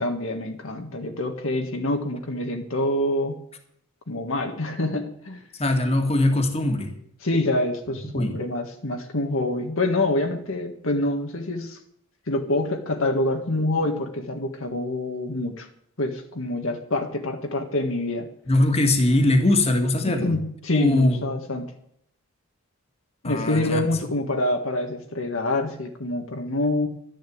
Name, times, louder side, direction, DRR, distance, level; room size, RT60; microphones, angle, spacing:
voice 1, 0.0-3.4 4.1-5.4 7.2-11.8 12.3-15.7 16.0-18.3 20.1-21.7 23.2-26.9, left 2 dB, 65° left, 4 dB, 1.6 m, -26 dB
voice 2, 5.6-6.9 8.1-8.4 18.5-20.4 20.7-21.2 23.2-23.8, left 1 dB, 30° left, 5 dB, 2.0 m, -21 dB
12.5 x 10.5 x 8.7 m, 0.70 s
head